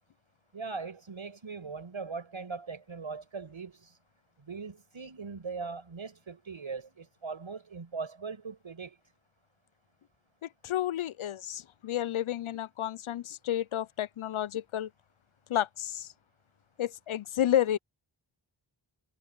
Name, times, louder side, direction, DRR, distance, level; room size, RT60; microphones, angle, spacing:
voice 1, 0.5-4.0 4.4-9.0, right 4 dB, 75° right, 7.9 m, -40 dB
voice 2, 10.6-14.9 15.5-16.1 16.8-17.8, left 11 dB, 90° left, 0.6 m, -31 dB
wide cardioid pair, 85°, 48 cm